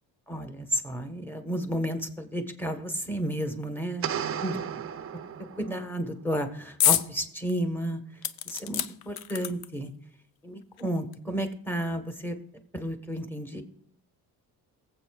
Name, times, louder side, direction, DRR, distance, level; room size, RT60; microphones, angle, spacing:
voice 1, 0.3-4.8 5.6-8.0 8.4-9.9 10.4-12.4 12.7-13.6, equal, 5° left, 6 dB, 1.2 m, -32 dB
sound 1, 4.0-5.9, right 8 dB, 40° right, 0.5 m, -34 dB
sound 2, 6.8-7.1 7.5-7.6 8.2-9.9 10.8-10.9 11.1-11.2, left 11 dB, 70° left, 0.6 m, -27 dB
22.5 x 7.8 x 2.4 m, 0.66 s
cardioid pair, 105°, 38 cm